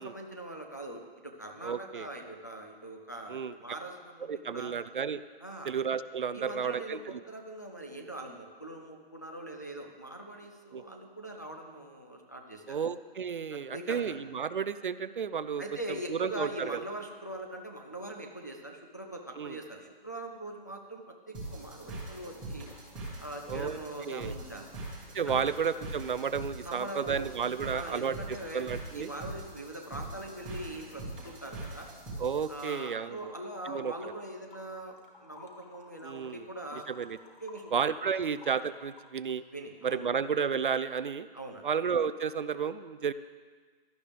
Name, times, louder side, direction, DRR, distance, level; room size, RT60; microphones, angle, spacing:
voice 1, 0.0-4.7 5.4-5.7 6.3-12.8 13.5-14.1 15.6-22.7 23.2-24.7 25.3-25.4 26.6-27.3 27.7-31.9 32.5-36.9 37.4-37.7 39.5-40.1 41.3-41.7, right 1 dB, 20° left, 0 dB, 0.5 m, -42 dB
voice 2, 1.6-2.1 3.3-3.5 4.3-5.2 5.7-7.2 10.7-10.8 12.7-15.6 16.1-16.8 19.4-19.6 23.5-24.3 25.1-29.1 32.2-33.3 33.7-33.9 36.0-36.5 36.7-37.2 37.7-39.4 39.8-41.3 41.6-43.1, right 6 dB, 55° right, 14 dB, 0.5 m, -32 dB
sound 1, 21.3-32.7, right 2 dB, 5° right, 1.3 m, -42 dB
sound 2, 33.2-34.7 35.0-39.4, left 4 dB, 55° left, 2.1 m, -55 dB
16.5 x 12.0 x 3.4 m, 1.5 s
hypercardioid pair, 175°, 31 cm